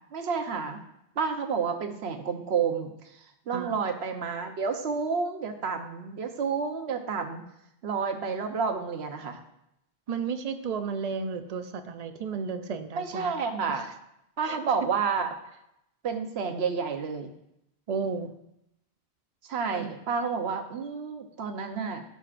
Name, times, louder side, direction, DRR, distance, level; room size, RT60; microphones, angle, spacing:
voice 1, 0.1-0.8 1.2-7.5 7.8-9.4 13.0-13.9 14.4-15.3 16.0-17.3 19.4-22.0, right 5 dB, 75° right, 5 dB, 1.1 m, -30 dB
voice 2, 10.1-13.3 13.7-13.9 14.4-14.6 17.9-18.3 19.7-19.9, right 5 dB, 45° right, 9 dB, 0.6 m, -33 dB
14.5 x 5.4 x 2.5 m, 0.82 s
omnidirectional pair, 1.1 m